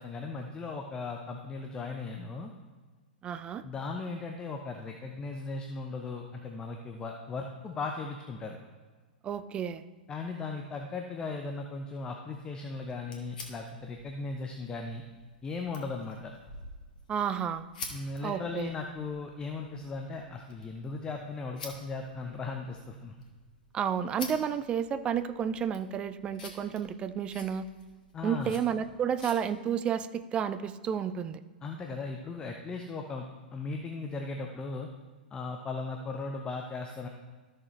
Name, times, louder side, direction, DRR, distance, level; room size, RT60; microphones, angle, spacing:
voice 1, 0.0-2.5 3.6-8.6 10.1-15.0 15.4-16.3 17.9-23.1 28.1-28.6 31.6-33.3 33.5-34.9 35.3-37.1, left 3 dB, 15° left, 3 dB, 0.7 m, -37 dB
voice 2, 3.2-3.6 9.2-9.8 17.1-17.6 18.2-18.7 23.7-27.6 28.2-31.4, right 8 dB, 20° right, 12 dB, 0.4 m, -31 dB
sound 1, 12.7-29.4, left 3 dB, 55° left, 1.6 m, -49 dB
13.0 x 6.5 x 3.2 m, 1.4 s
figure-of-eight pair, 105°, 5 cm